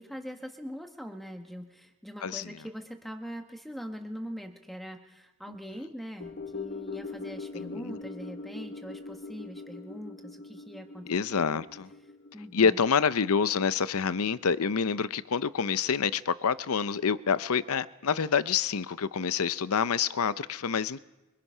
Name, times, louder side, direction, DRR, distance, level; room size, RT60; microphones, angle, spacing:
voice 1, 0.0-11.6 12.3-12.9, equal, ahead, 1.2 m, -42 dB
voice 2, 2.2-2.5 7.6-8.0 11.1-11.9 12.5-21.0, left 6 dB, 80° left, 0.6 m, -27 dB
sound 1, 6.2-14.6 15.0-15.1, left 3 dB, 45° left, 0.9 m, -42 dB
24.5 x 20.5 x 5.6 m
head